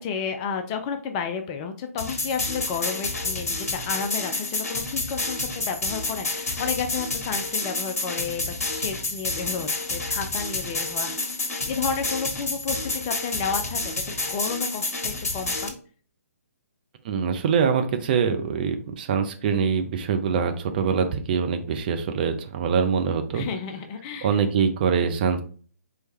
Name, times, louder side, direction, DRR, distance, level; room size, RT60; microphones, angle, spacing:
voice 1, 0.0-11.4 11.7-15.7 23.3-24.4, left 6 dB, 20° left, 7 dB, 0.4 m, -32 dB
sound 1, 2.0-15.7, left 2 dB, 60° left, 1.2 m, -29 dB
voice 2, 17.0-23.5 24.2-25.4, right 6 dB, 35° right, 6 dB, 0.6 m, -24 dB
4.6 x 3.2 x 3.1 m, 0.42 s
figure-of-eight pair, 130°, 9 cm